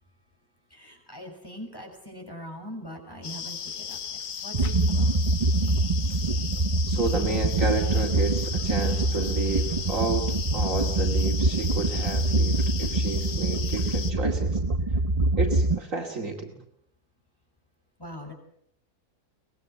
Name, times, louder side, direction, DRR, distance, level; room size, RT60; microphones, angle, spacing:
voice 1, 0.7-5.1 13.2-13.3 18.0-18.3, equal, 15° left, 3 dB, 6.6 m, -42 dB
sound 1, 3.2-14.1, left 7 dB, 60° left, 1.5 m, -36 dB
sound 2, 4.5-15.8, right 2 dB, 25° right, 1.0 m, -25 dB
voice 2, 6.9-14.6 15.4-16.6, right 3 dB, 60° right, 2 dB, 2.7 m, -31 dB
24.0 x 20.0 x 8.0 m, 0.71 s
omnidirectional pair, 1.6 m